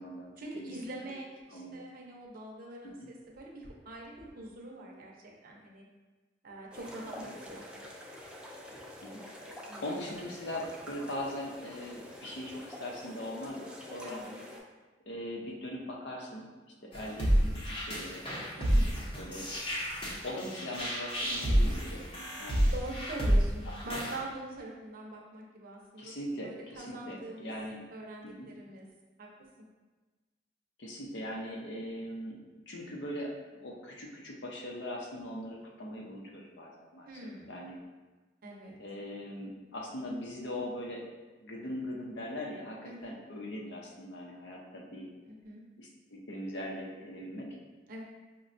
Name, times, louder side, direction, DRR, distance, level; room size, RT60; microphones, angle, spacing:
voice 1, 0.4-5.9 6.4-7.6 9.6-9.9 14.0-14.4 18.6-19.0 22.7-26.1 26.4-27.5 27.9-28.9 29.2-29.3 37.1-37.7 38.4-38.8 42.8-43.1 45.2-45.6 47.9-48.0, right 1 dB, 50° right, -2 dB, 0.6 m, -44 dB
sound 1, 6.7-14.6, left 1 dB, 5° right, 0.3 m, -47 dB
voice 2, 9.8-14.2 15.1-16.5 16.8-18.3 19.1-19.5 20.2-22.7 26.0-27.9 28.2-28.5 30.8-33.3 33.6-37.1 37.5-37.8 38.8-41.0 41.4-45.1 45.8-47.6, left 1 dB, 65° left, -1 dB, 0.6 m, -40 dB
sound 2, 16.9-24.2, equal, 30° left, 0.7 m, -29 dB
5.2 x 2.2 x 2.5 m, 1.3 s
head